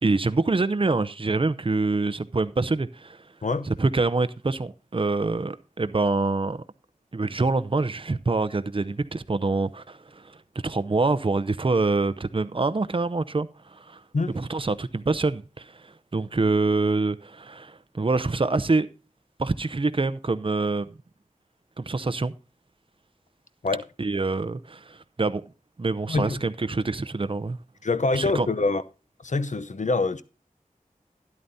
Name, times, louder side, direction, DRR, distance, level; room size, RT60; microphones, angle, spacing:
voice 1, 0.0-3.2 3.7-6.6 7.1-10.4 10.6-14.0 14.3-18.9 19.4-20.9 21.8-22.3 24.0-25.4 25.8-27.6 28.1-28.5, right 3 dB, 40° right, 0.6 m, -25 dB
voice 2, 26.1-26.4 27.8-28.8 29.2-30.2, left 3 dB, 60° left, 0.8 m, -25 dB
12.5 x 11.0 x 2.7 m
wide cardioid pair, 50°, 14 cm